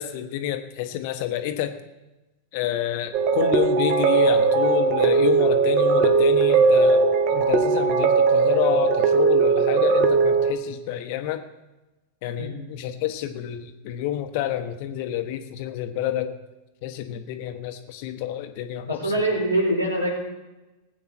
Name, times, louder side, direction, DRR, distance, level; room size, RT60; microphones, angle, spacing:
voice 1, 0.0-1.8 2.5-11.4 12.2-16.3 16.8-19.1, left 12 dB, 50° left, 8 dB, 1.4 m, -28 dB
sound 1, 3.1-10.5, right 4 dB, 40° right, 1.7 m, -19 dB
voice 2, 18.8-20.2, right 1 dB, 85° right, -1 dB, 4.5 m, -24 dB
19.5 x 8.8 x 4.5 m, 1.0 s
figure-of-eight pair, 90°, 0 cm